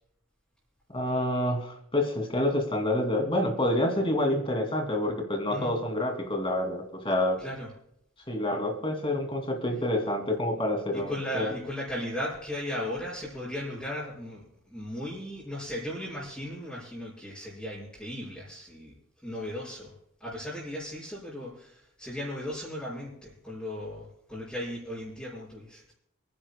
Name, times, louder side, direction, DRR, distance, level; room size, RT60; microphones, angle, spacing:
voice 1, 0.9-7.4 8.3-11.5, left 1 dB, 25° left, 3 dB, 2.6 m, -28 dB
voice 2, 7.4-7.7 10.9-18.9 19.2-19.9 20.2-25.9, left 1 dB, 5° left, -11 dB, 5.6 m, -36 dB
30.0 x 10.5 x 2.2 m, 0.76 s
head